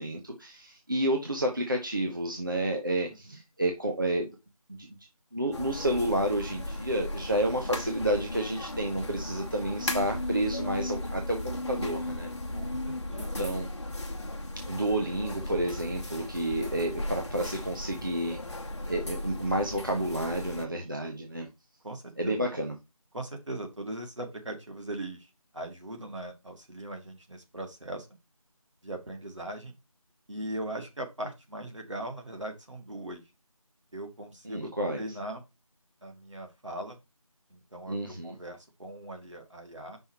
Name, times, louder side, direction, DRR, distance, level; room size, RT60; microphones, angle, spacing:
voice 1, 0.0-4.3 4.7-5.0 5.3-12.3 13.1-13.7 14.7-18.4 18.9-21.5 22.2-22.8 34.4-35.0 37.9-38.4, right 1 dB, 35° right, 1 dB, 0.9 m, -30 dB
sound 1, 5.5-20.7, left 1 dB, 50° left, 1.1 m, -36 dB
voice 2, 12.5-13.4 20.8-20.9 21.8-22.4 23.1-28.1 28.8-29.7 30.3-33.2 33.9-34.7 35.0-35.4 36.0-37.0 37.5-38.0 38.2-40.0, right 1 dB, 55° right, 3 dB, 1.9 m, -39 dB
5.5 x 4.7 x 4.5 m, 0.24 s
figure-of-eight pair, 175°, 19 cm